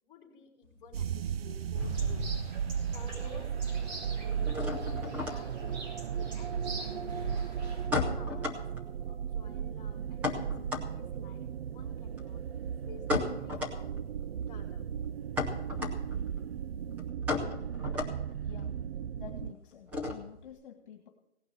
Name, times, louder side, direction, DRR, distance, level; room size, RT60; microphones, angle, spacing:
voice 1, 0.0-2.2 2.9-7.1 7.9-10.3 10.6-12.4 12.9-14.0 14.4-14.8, left 4 dB, 10° left, 0 dB, 3.9 m, -54 dB
sound 1, 0.6-2.3 2.5-3.2 3.5-20.5, left 3 dB, 5° right, 0.7 m, -37 dB
sound 2, 0.9-19.5, right 8 dB, 60° right, 0.5 m, -36 dB
sound 3, 1.7-7.9, equal, 35° right, 4.7 m, -42 dB
voice 2, 18.4-18.8 19.2-21.1, left 9 dB, 45° left, 4 dB, 2.0 m, -49 dB
17.5 x 6.2 x 8.5 m, 0.79 s
hypercardioid pair, 170°, 35 cm